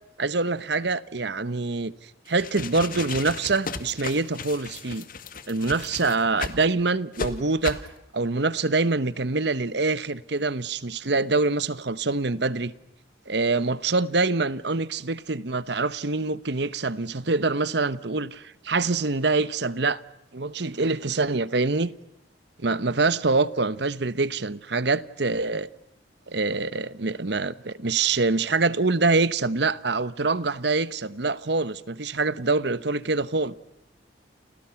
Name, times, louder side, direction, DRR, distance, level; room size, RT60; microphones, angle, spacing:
voice 1, 0.2-1.9 2.3-5.1 5.5-7.8 8.1-12.7 13.3-20.0 20.3-21.9 22.6-25.7 26.3-33.6, right 3 dB, 60° right, 1.0 m, -25 dB
sound 1, 2.3-6.6 7.1-7.3 7.6-7.9, left 4 dB, 45° left, 2.0 m, -34 dB
30.0 x 29.5 x 5.9 m
head